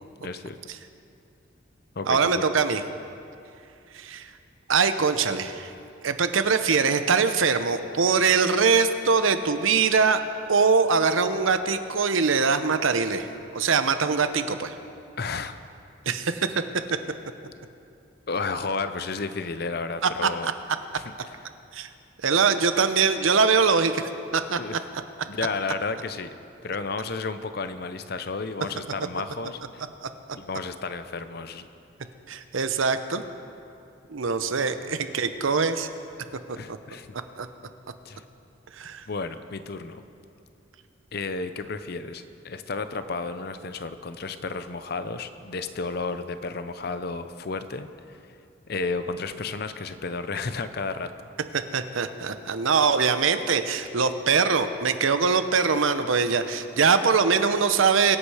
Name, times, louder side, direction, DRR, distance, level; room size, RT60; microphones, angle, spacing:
voice 1, 0.2-0.6 2.0-2.3 15.2-15.6 16.1-16.2 18.3-20.5 20.9-21.4 24.6-24.8 25.3-26.3 26.6-29.8 30.3-31.7 36.6-37.2 38.0-38.2 39.1-40.0 41.1-47.9 48.7-51.1, left 4 dB, 50° left, 11 dB, 0.6 m, -32 dB
voice 2, 2.1-2.8 3.9-4.3 4.7-5.7 6.0-10.2 10.5-13.3 13.5-14.7 16.1-16.5 20.2-20.3 21.7-21.9 22.2-24.0 24.3-24.6 30.0-30.1 32.3-33.2 34.1-35.9 36.7-36.8 37.4-37.5 38.8-39.0 51.5-58.2, right 5 dB, 80° right, 10 dB, 0.8 m, -22 dB
22.5 x 8.4 x 4.9 m, 2.6 s
head